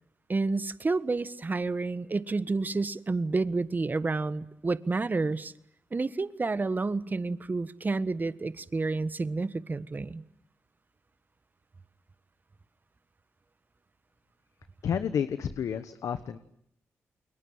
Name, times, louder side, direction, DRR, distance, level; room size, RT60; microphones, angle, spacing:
voice 1, 0.3-5.5 5.9-10.2, right 3 dB, 35° right, 15 dB, 1.4 m, -30 dB
voice 2, 14.8-16.4, left 8 dB, 75° left, 11 dB, 1.3 m, -30 dB
29.5 x 22.5 x 8.9 m, 0.72 s
cardioid pair, 60°, 5 cm